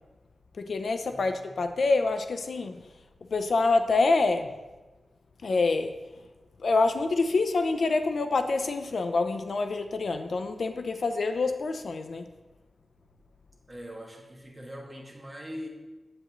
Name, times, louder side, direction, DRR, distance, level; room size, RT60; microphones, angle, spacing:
voice 1, 0.6-2.8 3.3-4.5 5.4-6.2 6.6-12.3, left 3 dB, 60° left, 8 dB, 0.4 m, -26 dB
voice 2, 13.7-15.7, equal, 20° right, -1 dB, 1.3 m, -42 dB
7.8 x 7.7 x 3.0 m, 1.2 s
wide cardioid pair, 155°, 0 cm